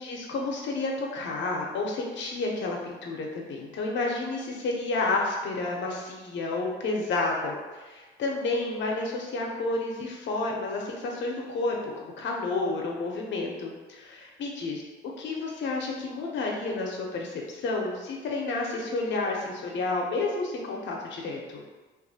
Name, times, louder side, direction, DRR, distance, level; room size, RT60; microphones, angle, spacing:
voice 1, 0.0-14.8 15.2-21.6, left 3 dB, 70° left, -1 dB, 0.6 m, -30 dB
2.6 x 2.4 x 2.7 m, 1.2 s
cardioid pair, 90°, 20 cm